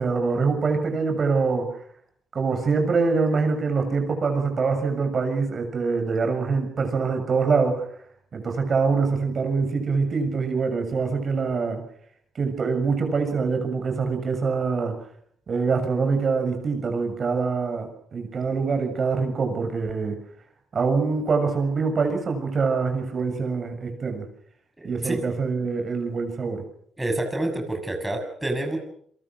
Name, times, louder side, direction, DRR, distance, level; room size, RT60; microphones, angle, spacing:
voice 1, 0.0-1.7 2.3-7.8 8.3-11.8 12.4-15.0 15.5-20.2 20.7-24.3 24.8-26.6, right 4 dB, 45° right, 6 dB, 7.2 m, -24 dB
voice 2, 24.8-25.2 27.0-28.8, right 1 dB, 10° right, 4 dB, 6.7 m, -28 dB
30.0 x 23.0 x 6.4 m, 0.66 s
cardioid pair, 90°, 0 cm